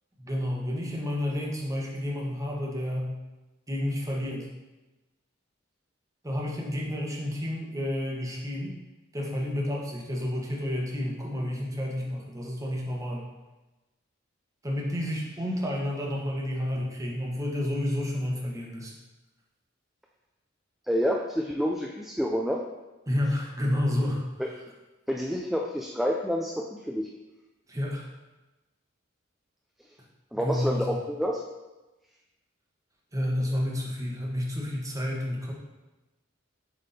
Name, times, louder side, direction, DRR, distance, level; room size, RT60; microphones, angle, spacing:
voice 1, 0.2-3.2 3.7-4.5 6.2-8.8 9.1-13.3 14.6-18.9 23.1-24.3 27.7-28.1 30.3-31.0 33.1-35.5, left 1 dB, 15° right, -2 dB, 1.1 m, -30 dB
voice 2, 20.9-22.6 24.4-24.5 25.1-27.1 30.3-31.4, equal, ahead, -1 dB, 0.3 m, -28 dB
7.4 x 3.5 x 4.1 m, 1.1 s
head